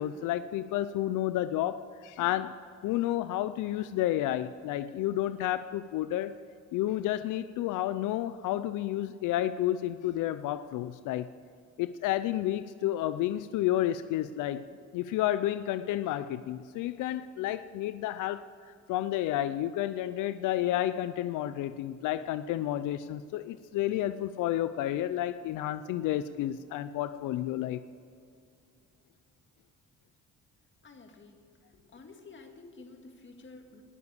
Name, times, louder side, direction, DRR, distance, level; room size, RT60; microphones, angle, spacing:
voice 1, 0.0-2.5 2.8-6.3 6.7-11.3 11.8-14.7 14.9-18.5 18.9-27.8, left 13 dB, 90° left, 13 dB, 0.5 m, -31 dB
voice 2, 30.8-31.4 31.7-33.8, left 3 dB, 40° left, 5 dB, 2.0 m, -51 dB
18.5 x 7.0 x 8.2 m, 2.5 s
cardioid pair, 90°, 30 cm